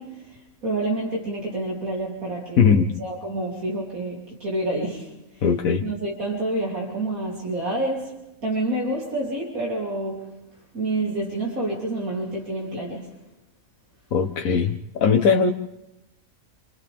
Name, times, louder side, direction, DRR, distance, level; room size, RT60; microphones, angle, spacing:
voice 1, 0.0-5.4 5.8-10.4 10.7-13.2, right 2 dB, 90° right, 3.8 m, -28 dB
voice 2, 2.6-2.9 5.4-5.8 14.1-15.5, left 6 dB, 80° left, 1.4 m, -19 dB
28.0 x 27.5 x 3.6 m
omnidirectional pair, 1.4 m